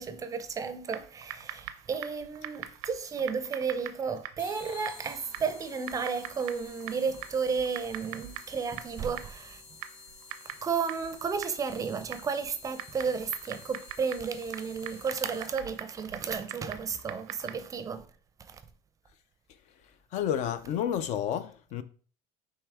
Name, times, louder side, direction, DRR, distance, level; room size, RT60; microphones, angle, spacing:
voice 1, 0.0-9.6 10.6-18.1 18.5-18.6, right 5 dB, 25° right, 0.5 m, -33 dB
Typing, 0.9-17.8, right 12 dB, 85° right, 0.5 m, -44 dB
sound 1, 4.4-15.8, left 4 dB, 35° left, 1.1 m, -51 dB
voice 2, 20.1-21.8, left 9 dB, 55° left, 0.4 m, -30 dB
4.6 x 3.1 x 3.4 m
cardioid pair, 130°, 14 cm